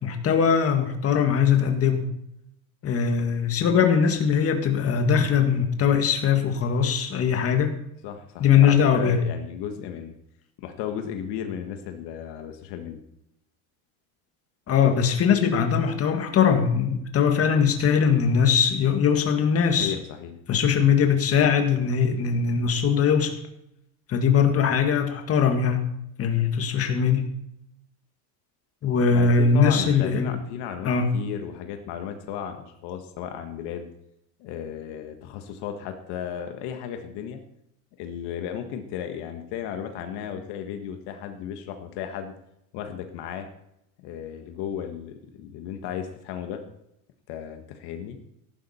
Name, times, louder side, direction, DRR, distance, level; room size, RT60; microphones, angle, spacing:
voice 1, 0.0-2.1 2.8-7.8 8.4-9.2 14.7-19.9 20.5-23.3 24.1-25.9 26.2-27.3 28.8-30.4 30.8-31.1, left 6 dB, 30° left, 5 dB, 1.8 m, -21 dB
voice 2, 8.0-10.1 10.6-13.0 19.8-20.3 29.1-33.9 34.4-37.4 38.0-42.3 42.7-43.5 44.0-46.6 47.3-48.2, left 9 dB, 65° left, 6 dB, 1.6 m, -34 dB
14.5 x 12.0 x 4.3 m, 0.79 s
cardioid pair, 140°, 43 cm